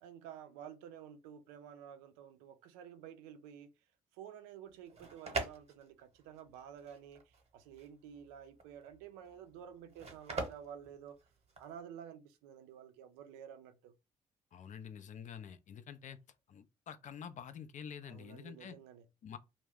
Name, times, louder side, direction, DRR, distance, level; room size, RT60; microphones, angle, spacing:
voice 1, 0.0-3.7 4.1-11.2 11.6-13.9 18.0-19.1, right 9 dB, 85° right, 0.4 m, -51 dB
sound 1, 4.7-11.8, right 3 dB, 40° right, 0.9 m, -43 dB
voice 2, 14.5-16.2 16.5-18.8 19.2-19.4, left 8 dB, 50° left, 0.4 m, -48 dB
2.2 x 2.0 x 3.4 m
hypercardioid pair, 50°, 17 cm